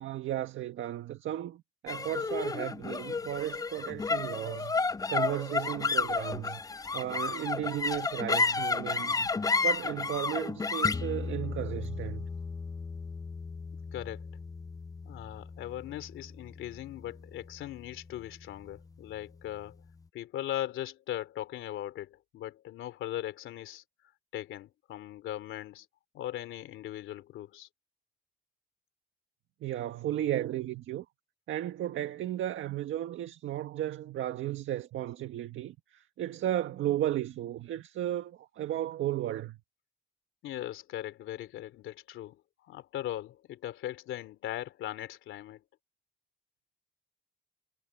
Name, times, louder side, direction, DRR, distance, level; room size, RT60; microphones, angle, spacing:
voice 1, 0.0-4.8 5.1-6.6 6.9-9.3 9.6-12.3 29.6-31.0 31.5-39.6, right 12 dB, 75° right, 1.7 m, -34 dB
sound 1, 1.9-18.4, left 4 dB, 20° left, 0.5 m, -33 dB
voice 2, 13.9-14.3 15.0-19.8 20.1-23.8 24.3-25.9 26.1-27.7 40.4-45.6, left 13 dB, 85° left, 3.1 m, -39 dB
cardioid pair, 90°, 20 cm